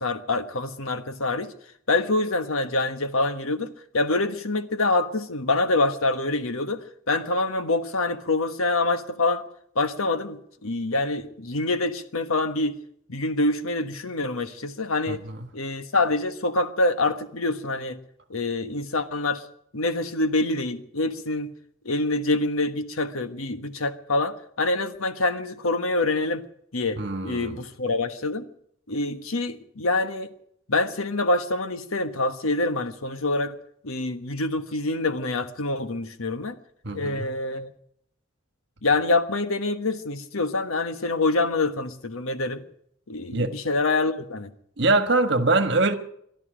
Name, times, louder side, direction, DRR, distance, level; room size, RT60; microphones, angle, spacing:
voice 1, 0.0-1.5 1.9-9.4 9.7-12.7 13.1-15.2 15.5-18.0 18.3-19.4 19.7-21.5 21.8-26.5 26.7-28.5 28.9-30.3 30.7-33.6 33.8-36.6 36.9-37.7 38.8-42.6 43.1-44.5, left 2 dB, 85° left, 1.3 m, -26 dB
voice 2, 15.1-15.5 27.0-27.6 36.8-37.3 43.3-43.5 44.8-45.9, right 2 dB, 55° right, 1.5 m, -23 dB
22.5 x 12.5 x 5.1 m
head